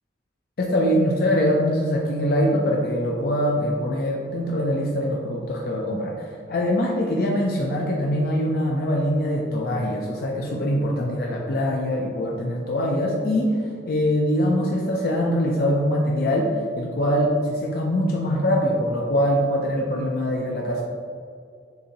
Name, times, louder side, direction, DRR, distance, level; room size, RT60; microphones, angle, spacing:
voice 1, 0.6-13.6 13.9-16.5 16.8-20.8, equal, 55° left, -2 dB, 0.4 m, -23 dB
6.7 x 2.6 x 2.7 m, 2.3 s
head